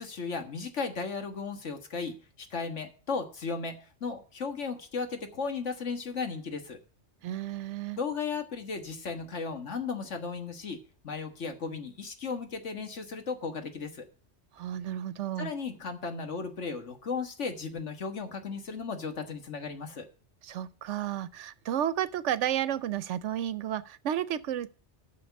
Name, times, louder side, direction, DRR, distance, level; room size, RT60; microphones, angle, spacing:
voice 1, 0.0-6.8 7.9-14.1 15.4-20.1, left 5 dB, 80° left, 1.8 m, -35 dB
voice 2, 7.2-8.0 14.5-15.5 20.4-24.7, right 11 dB, 80° right, 1.0 m, -32 dB
8.6 x 6.5 x 8.3 m
omnidirectional pair, 1.2 m